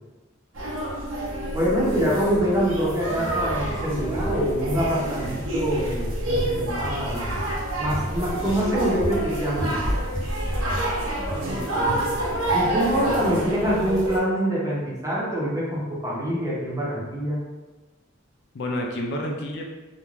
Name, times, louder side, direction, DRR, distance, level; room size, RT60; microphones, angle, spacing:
sound 1, 0.5-14.2, right 1 dB, 80° right, 0.7 m, -27 dB
voice 1, 1.5-7.3 7.8-9.8 11.3-11.9 12.5-17.4, equal, 15° right, -6 dB, 0.7 m, -25 dB
voice 2, 12.9-13.4 18.5-19.6, left 1 dB, 60° left, 1 dB, 0.4 m, -30 dB
2.4 x 2.2 x 3.1 m, 1.2 s
head